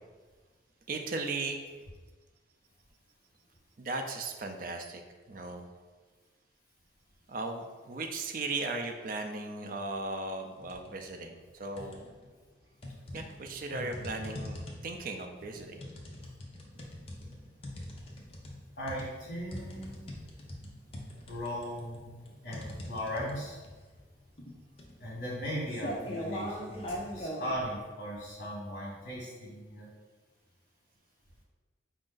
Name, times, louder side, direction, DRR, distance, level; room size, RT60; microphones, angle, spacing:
voice 1, 0.9-1.6 3.8-5.0 5.3-5.7 7.3-12.1 13.1-15.8, right 3 dB, 45° right, 5 dB, 0.4 m, -37 dB
sound 1, 10.6-10.9 11.3-12.3 12.8-27.5, equal, 30° left, 0.6 m, -41 dB
voice 2, 13.7-14.1 18.8-20.0 21.3-23.6 25.0-29.9, equal, 55° left, -6 dB, 1.2 m, -38 dB
5.1 x 2.5 x 3.8 m, 1.3 s
head